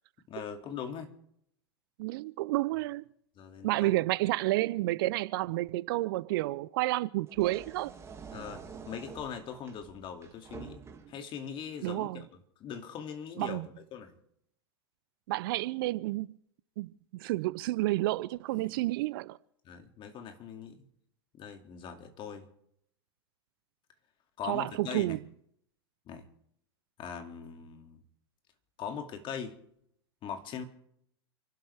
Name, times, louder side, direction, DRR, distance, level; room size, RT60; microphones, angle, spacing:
voice 1, 0.3-1.1 3.4-3.9 8.3-14.1 18.5-18.8 19.6-20.8 21.4-22.5 24.4-25.2 26.1-26.2 27.0-28.0 28.8-29.6 30.2-30.6, left 7 dB, 35° left, 2.5 m, -41 dB
voice 2, 2.0-3.0 3.6-7.9 11.8-12.2 13.4-13.7 15.3-16.3 16.8-19.4 24.5-25.2, right 18 dB, 55° right, 0.6 m, -30 dB
sound 1, 7.3-11.3, right 6 dB, 20° right, 2.3 m, -48 dB
29.0 x 12.0 x 3.5 m
figure-of-eight pair, 90°, 14 cm